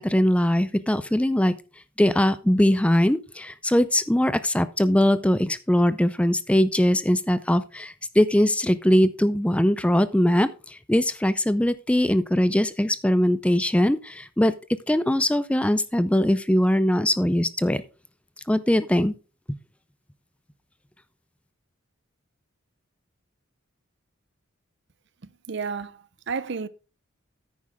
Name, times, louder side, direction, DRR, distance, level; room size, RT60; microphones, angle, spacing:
voice 1, 0.0-1.6 2.0-14.5 14.9-17.8 18.5-19.2, left 1 dB, 5° left, 0.4 m, -21 dB
voice 2, 25.5-26.0 26.3-26.7, right 5 dB, 55° right, 0.7 m, -30 dB
9.7 x 9.6 x 3.5 m
head